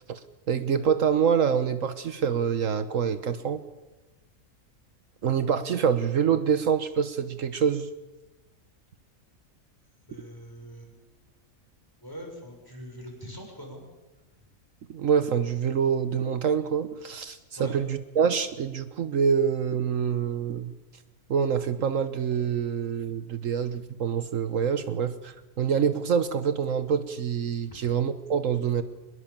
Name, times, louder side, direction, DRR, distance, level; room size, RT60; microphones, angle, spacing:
voice 1, 0.5-3.6 5.2-7.9 14.9-20.7 21.3-28.8, right 7 dB, 70° right, 11 dB, 1.4 m, -26 dB
voice 2, 10.1-10.9 12.0-13.8 17.6-17.8 27.7-27.9, equal, 15° left, 1 dB, 6.7 m, -43 dB
24.5 x 21.0 x 7.3 m, 1.1 s
omnidirectional pair, 1.4 m